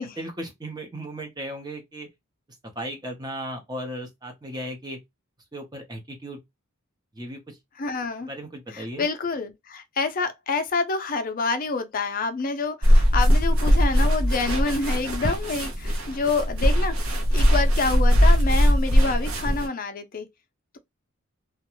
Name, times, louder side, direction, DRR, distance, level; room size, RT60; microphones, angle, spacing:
voice 1, 0.2-2.1 2.8-5.0 5.5-6.4 7.1-7.6 8.3-9.1, right 1 dB, 20° right, 0.7 m, -36 dB
voice 2, 7.8-8.3 8.7-20.3, left 4 dB, 40° left, 0.5 m, -27 dB
sound 1, 12.8-19.7, equal, 75° right, 0.8 m, -20 dB
2.4 x 2.2 x 2.9 m
head